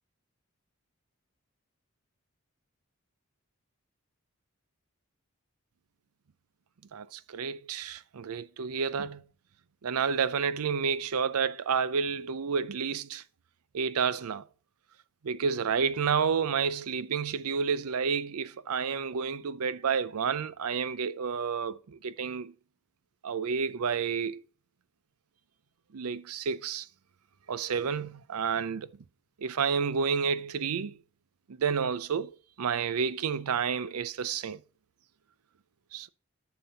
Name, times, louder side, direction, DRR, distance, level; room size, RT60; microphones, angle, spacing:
voice 1, 6.9-9.2 9.8-13.2 13.7-14.4 15.2-22.5 23.2-24.4 25.9-26.9 27.5-28.9 29.4-31.0 31.5-34.6 35.9-36.1, right 6 dB, 90° right, 0.5 m, -30 dB
10.5 x 6.1 x 4.0 m
head